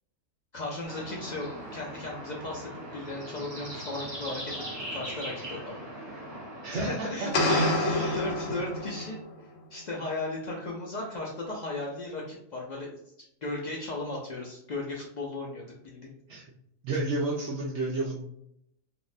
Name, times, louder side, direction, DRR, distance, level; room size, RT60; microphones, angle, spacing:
voice 1, 0.5-5.8 6.7-12.9 13.4-16.1, left 2 dB, 90° left, -3 dB, 0.3 m, -36 dB
sound 1, 0.8-7.0, equal, 25° right, 0.8 m, -40 dB
voice 2, 6.6-8.5 16.3-16.5 16.8-18.2, right 2 dB, 70° right, -4 dB, 0.8 m, -32 dB
sound 2, 7.3-9.3, left 1 dB, 60° left, 0.8 m, -27 dB
3.5 x 2.1 x 2.5 m, 0.75 s
omnidirectional pair, 1.4 m